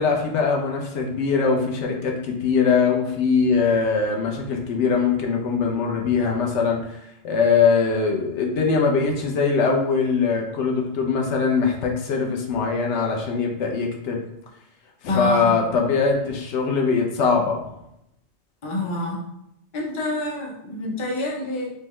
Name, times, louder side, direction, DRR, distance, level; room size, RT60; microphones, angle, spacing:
voice 1, 0.0-6.8 7.2-14.2 15.0-17.6, left 5 dB, 75° left, 1 dB, 0.9 m, -22 dB
voice 2, 15.1-15.6 18.6-19.2 19.7-21.7, left 2 dB, 35° left, -1 dB, 0.5 m, -27 dB
3.5 x 2.1 x 3.0 m, 0.80 s
omnidirectional pair, 1.2 m